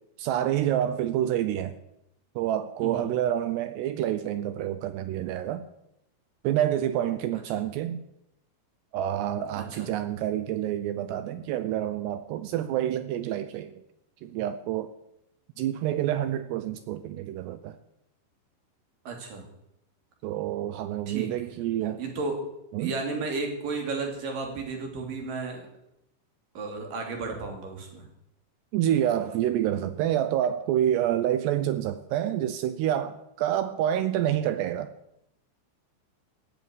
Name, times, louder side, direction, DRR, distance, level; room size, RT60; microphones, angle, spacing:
voice 1, 0.2-1.8 2.4-5.6 6.4-8.0 8.9-13.8 14.2-14.9 15.6-17.8 20.2-22.0 22.7-22.9 28.7-34.9, right 11 dB, 80° right, 2.6 m, -28 dB
voice 2, 9.6-9.9 19.1-19.4 21.1-21.3 22.0-22.4 22.8-25.6 26.6-28.1, right 4 dB, 50° right, 4.1 m, -33 dB
16.5 x 7.4 x 9.6 m
omnidirectional pair, 5.3 m